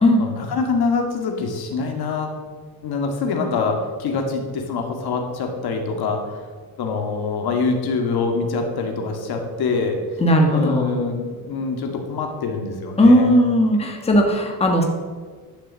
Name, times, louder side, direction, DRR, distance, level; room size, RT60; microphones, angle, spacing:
voice 1, 0.2-2.3 2.8-6.2 6.8-10.0 10.5-13.4, left 4 dB, 70° left, 3 dB, 2.1 m, -24 dB
voice 2, 10.2-10.9 13.0-14.8, equal, 15° left, 2 dB, 1.4 m, -16 dB
11.5 x 6.6 x 7.6 m, 1.5 s
cardioid pair, 145°, 39 cm